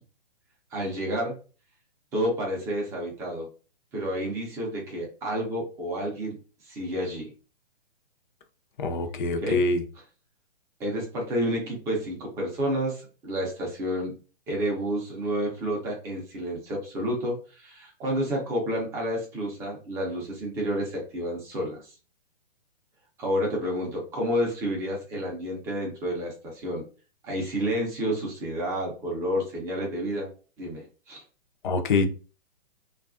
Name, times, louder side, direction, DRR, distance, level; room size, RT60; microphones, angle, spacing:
voice 1, 0.7-1.3 2.1-3.5 3.9-7.3 9.4-9.6 10.8-14.1 14.5-21.9 23.2-26.8 27.2-30.3 30.6-31.2, equal, 10° right, -1 dB, 0.4 m, -30 dB
voice 2, 8.8-9.8 31.6-32.1, left 3 dB, 55° left, 7 dB, 0.6 m, -24 dB
2.6 x 2.4 x 2.4 m, 0.36 s
hypercardioid pair, 145°, 30 cm